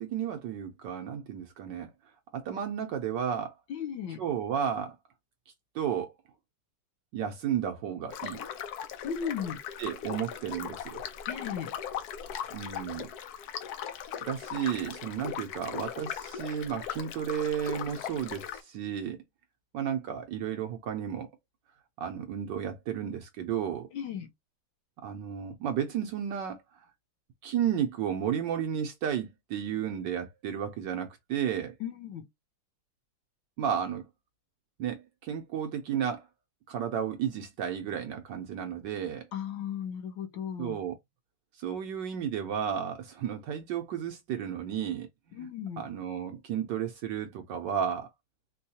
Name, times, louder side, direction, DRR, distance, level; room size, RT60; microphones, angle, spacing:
voice 1, 0.0-1.9 2.3-3.5 4.2-5.0 5.7-6.1 7.1-8.4 9.8-11.0 12.5-13.1 14.3-19.2 19.7-21.3 22.0-23.9 25.0-26.6 27.4-31.8 33.6-34.0 34.8-36.3 36.7-39.3 40.6-41.0 41.6-45.5 45.8-48.1, right 8 dB, 70° right, 1.1 m, -33 dB
voice 2, 3.7-4.2 9.0-9.6 11.3-11.7 23.9-24.3 31.8-32.3 39.3-40.8 45.3-45.8, left 8 dB, 70° left, 1.4 m, -35 dB
sound 1, 8.1-18.6, left 9 dB, 85° left, 0.8 m, -39 dB
4.5 x 2.3 x 2.7 m
omnidirectional pair, 2.3 m